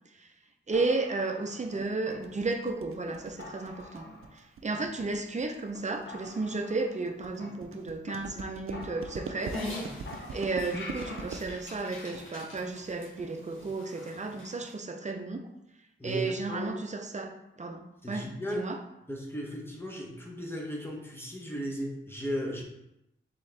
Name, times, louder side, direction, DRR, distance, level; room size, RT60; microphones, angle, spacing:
sound 1, 0.7-2.7 3.1-3.2 3.4-4.4 4.7-5.4 5.7-5.8 6.1-8.1 8.4-8.5 8.7-9.8 10.1-11.4, left 2 dB, 60° left, 0.7 m, -46 dB
voice 1, 0.7-4.1 4.6-9.6 10.3-15.5 16.0-17.3 17.6-18.8, right 3 dB, 35° right, 5 dB, 0.6 m, -33 dB
sound 2, 1.8-13.8, right 5 dB, 85° right, 0.5 m, -43 dB
Dog, 9.4-14.7, left 1 dB, 75° left, 1.7 m, -43 dB
voice 2, 16.0-16.7 18.0-18.7 19.1-22.6, equal, 10° left, -1 dB, 0.9 m, -36 dB
4.0 x 3.7 x 3.3 m, 0.86 s
wide cardioid pair, 80°, 21 cm